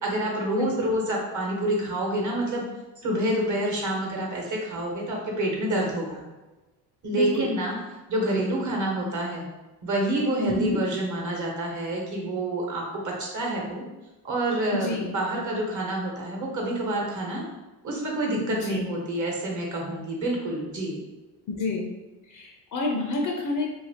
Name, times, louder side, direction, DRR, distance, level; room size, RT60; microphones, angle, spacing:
voice 1, 0.0-2.6 3.0-6.2 7.0-7.8 8.1-9.4 9.8-13.8 14.2-17.4 17.8-21.0, right 1 dB, 40° right, -1 dB, 1.1 m, -27 dB
voice 2, 0.5-1.0 7.1-7.5 10.4-10.8 14.7-15.2 18.5-18.9 21.5-21.9 22.3-23.7, left 2 dB, 45° left, 1 dB, 0.6 m, -29 dB
2.8 x 2.6 x 2.8 m, 1.1 s
supercardioid pair, 75°, 45 cm